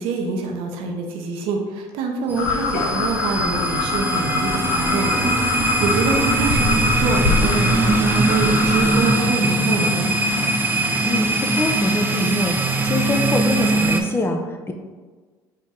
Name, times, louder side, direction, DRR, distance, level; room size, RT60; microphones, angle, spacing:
voice 1, 0.0-10.1, right 4 dB, 70° right, 2 dB, 0.8 m, -26 dB
sound 1, 2.3-14.0, right 2 dB, 20° right, 0.6 m, -21 dB
sound 2, 2.4-9.1, left 4 dB, 85° left, 0.6 m, -24 dB
voice 2, 11.0-14.7, left 2 dB, 25° left, 4 dB, 0.6 m, -24 dB
4.4 x 3.0 x 3.7 m, 1.4 s
hypercardioid pair, 70°, 10 cm